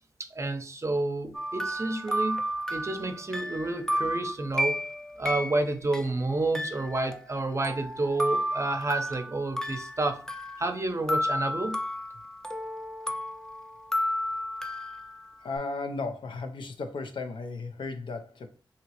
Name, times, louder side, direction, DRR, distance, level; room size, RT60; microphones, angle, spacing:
voice 1, 0.2-2.4 2.7-4.8 5.2-10.2 10.6-11.8, right 2 dB, 35° right, 0.6 m, -30 dB
sound 1, 1.3-6.1 6.5-10.8 11.1-15.6, equal, 5° left, 0.4 m, -32 dB
voice 2, 15.4-18.5, left 3 dB, 75° left, 0.5 m, -35 dB
2.9 x 2.8 x 2.9 m
cardioid pair, 45°, 8 cm